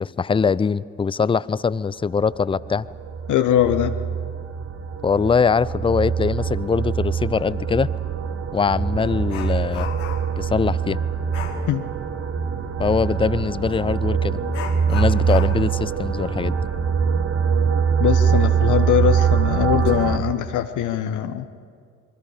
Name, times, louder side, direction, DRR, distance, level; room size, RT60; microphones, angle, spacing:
voice 1, 0.0-2.9 5.0-7.9 8.5-9.9 10.4-11.0 12.8-14.4 14.9-16.6, left 5 dB, 15° left, 19 dB, 0.5 m, -22 dB
sound 1, 2.5-20.2, right 7 dB, 35° right, 1.7 m, -23 dB
voice 2, 3.3-4.0 11.7-11.9 18.0-21.5, left 10 dB, 55° left, 8 dB, 1.1 m, -21 dB
Dog, 8.0-8.1 8.5-10.4 11.3-11.7 13.6-13.8 14.5-17.8 18.1-18.2 18.7-18.8 19.5-19.9 20.3-20.5, left 8 dB, 80° left, 1.8 m, -37 dB
27.5 x 23.0 x 5.0 m, 2.2 s
figure-of-eight pair, 50°, 37 cm